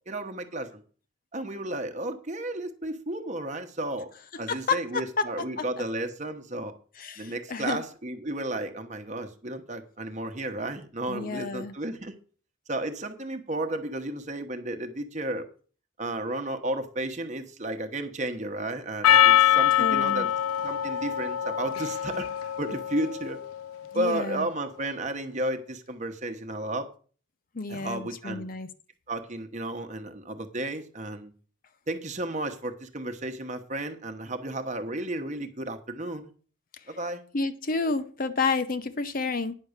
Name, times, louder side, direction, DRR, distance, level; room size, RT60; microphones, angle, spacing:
voice 1, 0.1-0.8 1.3-4.1 4.4-6.7 7.2-12.1 12.7-15.5 16.0-20.3 20.6-22.3 22.6-23.4 23.9-26.9 27.7-28.5 29.1-31.3 31.9-36.3 36.9-37.2, right 1 dB, 35° right, 7 dB, 1.0 m, -33 dB
voice 2, 4.5-5.3 5.6-5.7 7.0-7.8 11.1-11.7 19.8-20.3 23.9-24.5 27.5-28.7 37.3-39.5, left 4 dB, 40° left, 11 dB, 0.6 m, -30 dB
Percussion, 19.0-23.6, left 11 dB, 85° left, 0.4 m, -23 dB
9.8 x 6.0 x 6.6 m, 0.41 s
head